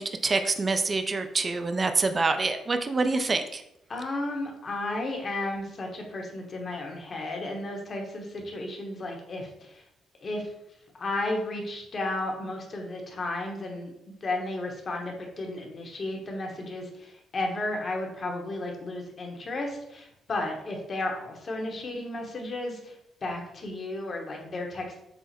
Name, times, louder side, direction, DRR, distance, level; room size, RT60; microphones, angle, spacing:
voice 1, 0.0-3.6, right 3 dB, 30° right, 8 dB, 0.4 m, -26 dB
voice 2, 3.9-9.8 10.2-10.5 11.0-25.0, left 2 dB, 45° left, 1 dB, 1.1 m, -33 dB
5.6 x 2.1 x 4.2 m, 0.82 s
cardioid pair, 90°, 0 cm